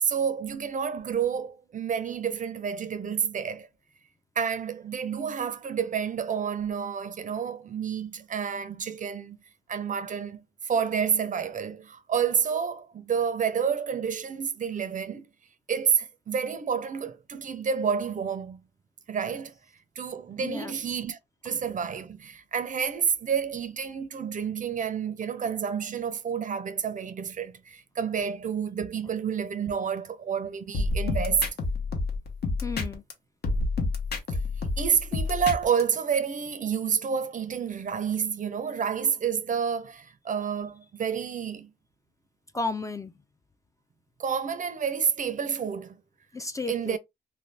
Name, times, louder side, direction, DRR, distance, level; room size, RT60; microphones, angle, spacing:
voice 1, 0.0-3.7 4.4-9.4 9.7-15.3 15.7-18.6 19.1-19.5 20.0-31.5 34.3-34.4 34.8-41.7 44.2-46.0 46.7-47.0, right 7 dB, 45° right, 0.5 m, -29 dB
voice 2, 20.4-20.7 32.6-33.0 42.5-43.1 46.3-47.0, left 3 dB, 15° left, 0.4 m, -33 dB
sound 1, 30.7-33.1 33.4-35.8, left 3 dB, 60° left, 0.8 m, -28 dB
2.5 x 2.2 x 3.2 m
cardioid pair, 95°, 19 cm